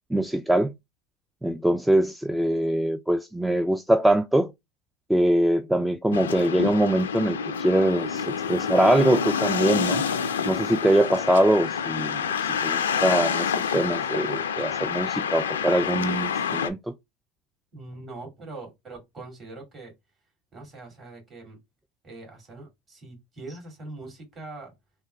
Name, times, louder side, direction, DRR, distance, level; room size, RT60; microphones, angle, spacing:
voice 1, 0.1-0.7 1.4-4.5 5.1-10.0 10.5-12.2 12.6-16.8, right 1 dB, 5° right, 0.3 m, -23 dB
sound 1, 6.1-16.7, left 7 dB, 90° left, 0.4 m, -28 dB
voice 2, 17.7-19.9 20.5-21.6 22.0-24.7, right 2 dB, 35° right, 2.1 m, -42 dB
3.4 x 2.2 x 3.2 m
hypercardioid pair, 85°, 0 cm